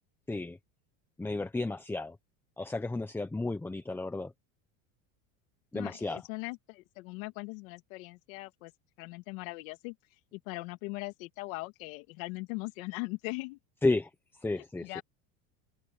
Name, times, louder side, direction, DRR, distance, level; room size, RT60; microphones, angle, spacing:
voice 1, 1.2-2.2 2.6-4.3 5.7-6.2 13.8-14.1 14.4-15.0, left 2 dB, 5° left, 0.9 m, -32 dB
voice 2, 5.7-8.7 9.0-13.6 14.4-15.0, left 25 dB, 75° left, 2.3 m, -40 dB
supercardioid pair, 145°, 41 cm